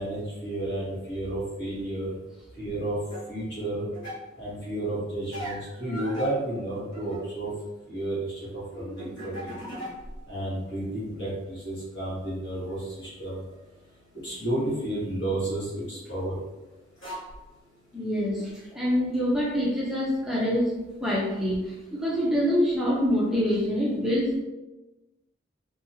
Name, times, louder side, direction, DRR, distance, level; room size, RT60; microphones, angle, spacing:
voice 1, 0.0-2.1 2.6-3.0 3.3-3.8 4.4-7.5 7.9-9.6 10.3-13.4 14.1-16.4, right 1 dB, 60° left, -8 dB, 1.5 m, -32 dB
sound 1, 3.1-3.3 3.9-4.3 5.3-7.6 7.9-10.3 10.6-11.5 12.7-12.8 14.3-16.0 16.6-16.7 17.0-17.4 18.4-18.5, equal, 80° left, 1.4 m, -41 dB
voice 2, 17.9-20.7 21.0-24.4, equal, ahead, -6 dB, 0.4 m, -25 dB
2.9 x 2.7 x 2.6 m, 1.1 s
head